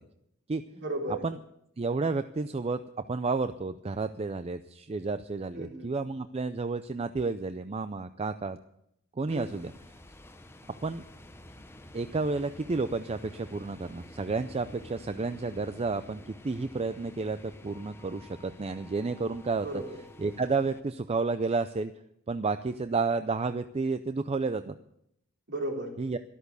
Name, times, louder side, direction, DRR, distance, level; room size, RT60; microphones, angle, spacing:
voice 1, 0.7-1.3 5.5-5.9 9.3-9.6 19.6-20.0 25.5-26.0, right 1 dB, 55° right, 0 dB, 3.7 m, -35 dB
voice 2, 1.8-2.8 3.1-8.6 9.2-9.7 10.8-11.0 11.9-19.7 20.2-21.9 22.3-24.7 26.0-26.2, right 3 dB, 30° right, 10 dB, 0.4 m, -31 dB
sound 1, 9.3-20.8, left 1 dB, 10° left, 0.8 m, -50 dB
13.0 x 12.5 x 6.8 m, 0.76 s
head